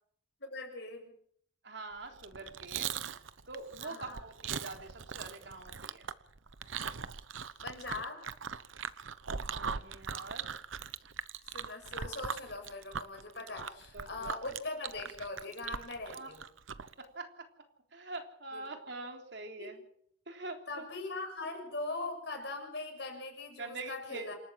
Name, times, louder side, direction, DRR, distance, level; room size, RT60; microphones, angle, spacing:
voice 1, 0.4-1.1 3.8-4.2 7.6-8.2 11.5-16.4 18.5-18.7 19.6-19.7 20.7-24.4, left 2 dB, 60° left, 4 dB, 7.0 m, -41 dB
voice 2, 1.6-2.9 3.5-6.1 9.4-10.4 13.5-14.3 16.1-16.3 17.0-17.5 17.9-19.8 20.3-20.8 23.6-24.3, right 3 dB, 60° right, 4 dB, 3.5 m, -44 dB
Chewing mastication, 2.1-16.9, right 7 dB, 85° right, 1.0 m, -40 dB
27.5 x 12.5 x 7.5 m, 0.65 s
head